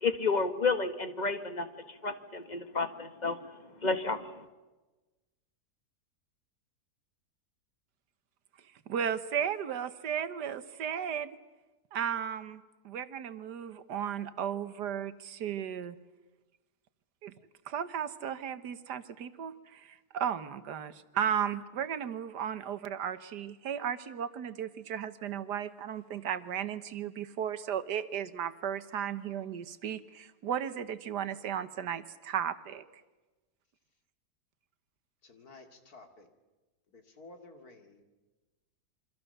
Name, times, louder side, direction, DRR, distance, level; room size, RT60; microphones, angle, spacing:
voice 1, 0.0-3.4 3.8-4.4, left 4 dB, 25° left, 9 dB, 1.5 m, -31 dB
voice 2, 8.9-11.4 11.9-16.0 17.2-17.3 17.7-32.8, right 8 dB, 90° right, 12 dB, 1.7 m, -35 dB
voice 3, 35.2-36.3 36.9-38.0, left 3 dB, 65° left, 5 dB, 3.0 m, -53 dB
28.0 x 24.5 x 6.8 m, 1.2 s
omnidirectional pair, 1.7 m